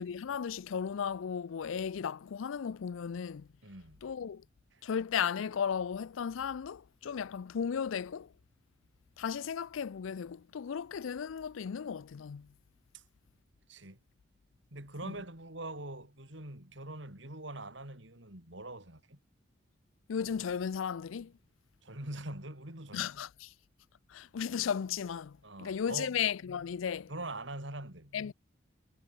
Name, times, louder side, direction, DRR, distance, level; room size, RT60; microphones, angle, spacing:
voice 1, 0.0-3.5 4.0-4.4 4.8-8.3 9.2-12.5 15.0-15.1 20.1-21.3 22.9-23.5 24.1-27.1 28.1-28.3, left 7 dB, 85° left, 0.4 m, -35 dB
voice 2, 3.6-4.0 4.7-4.8 12.9-13.0 13.7-14.0 14.7-19.2 21.8-23.1 25.4-26.2 27.1-28.2, right 2 dB, 65° right, 5.3 m, -43 dB
head